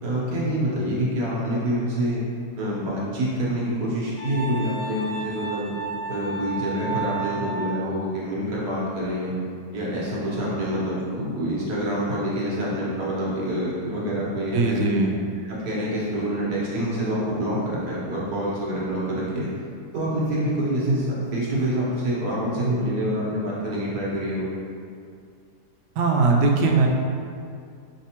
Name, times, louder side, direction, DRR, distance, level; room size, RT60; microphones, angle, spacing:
voice 1, 0.0-2.2 2.6-5.7 6.1-9.3 9.7-14.8 15.4-19.5 19.9-24.5, equal, 70° right, -6 dB, 1.4 m, -26 dB
Wind instrument woodwind instrument, 4.2-7.8, right 4 dB, 65° left, 1.2 m, -32 dB
voice 2, 14.5-15.1 26.0-26.9, right 3 dB, 90° right, 1 dB, 1.2 m, -20 dB
4.4 x 3.3 x 2.8 m, 2.3 s
omnidirectional pair, 1.8 m